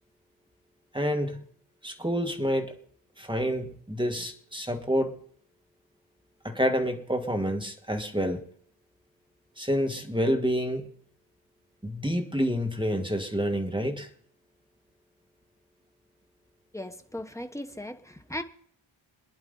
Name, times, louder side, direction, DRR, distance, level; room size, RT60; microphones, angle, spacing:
voice 1, 0.9-1.4 1.8-2.7 3.2-5.2 6.4-8.4 9.6-10.9 11.8-14.1, equal, 10° right, 1.7 m, -28 dB
voice 2, 16.7-18.4, left 1 dB, 5° left, 1.0 m, -37 dB
26.5 x 10.5 x 3.9 m
wide cardioid pair, 115°, 50 cm